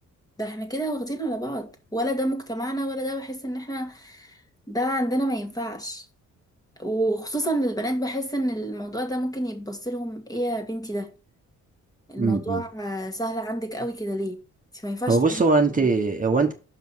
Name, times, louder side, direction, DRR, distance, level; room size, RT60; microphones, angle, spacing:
voice 1, 0.4-4.4 4.7-6.1 6.8-11.1 12.1-14.4 14.7-15.2, right 1 dB, 10° left, 1.8 m, -29 dB
voice 2, 12.2-12.6 15.1-16.5, right 3 dB, 25° right, 1.2 m, -21 dB
5.8 x 5.4 x 6.2 m
cardioid pair, 90°, 30 cm